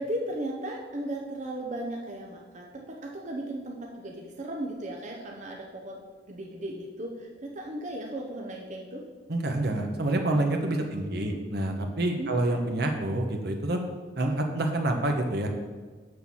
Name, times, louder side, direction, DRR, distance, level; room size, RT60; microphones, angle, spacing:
voice 1, 0.0-6.0 6.3-9.0 10.7-11.4 12.2-12.3, right 1 dB, 40° right, 0 dB, 0.9 m, -36 dB
voice 2, 9.3-13.8 14.2-15.5, right 1 dB, 60° right, 3 dB, 1.2 m, -27 dB
6.7 x 6.4 x 7.2 m, 1.4 s
head